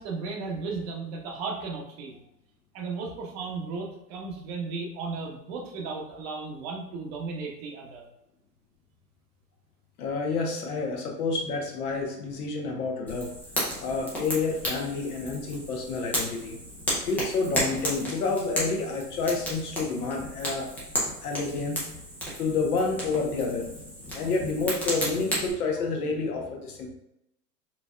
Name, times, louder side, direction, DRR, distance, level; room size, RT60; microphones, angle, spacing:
voice 1, 0.0-2.2 2.7-8.1, right 4 dB, 40° right, 0 dB, 0.8 m, -35 dB
voice 2, 10.0-13.3 13.8-16.6 17.0-20.7 21.2-21.8 22.4-26.9, left 4 dB, 70° left, 1 dB, 1.1 m, -29 dB
Fire, 13.1-25.5, equal, 5° left, 0.3 m, -33 dB
4.4 x 2.7 x 2.2 m, 0.84 s
hypercardioid pair, 110°, 48 cm